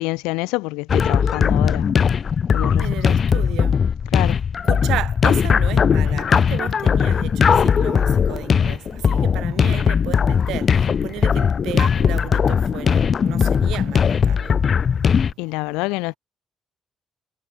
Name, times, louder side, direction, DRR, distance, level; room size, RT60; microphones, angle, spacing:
voice 1, 0.0-1.9 2.5-3.2 4.1-4.4 15.4-16.1, left 25 dB, 80° left, 0.8 m, -27 dB
sound 1, 0.9-15.3, left 7 dB, 50° left, 1.4 m, -19 dB
voice 2, 2.8-3.8 4.6-15.0 15.5-15.6, right 15 dB, 75° right, 3.6 m, -33 dB
hypercardioid pair, 45°, 0 cm